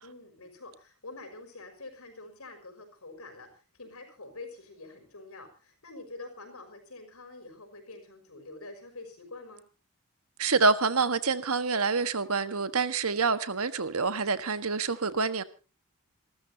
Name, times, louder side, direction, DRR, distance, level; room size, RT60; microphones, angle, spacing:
voice 1, 0.0-9.6, left 2 dB, 75° left, 5.9 m, -46 dB
voice 2, 10.4-15.4, right 4 dB, 75° right, 1.4 m, -27 dB
28.0 x 13.5 x 2.8 m
head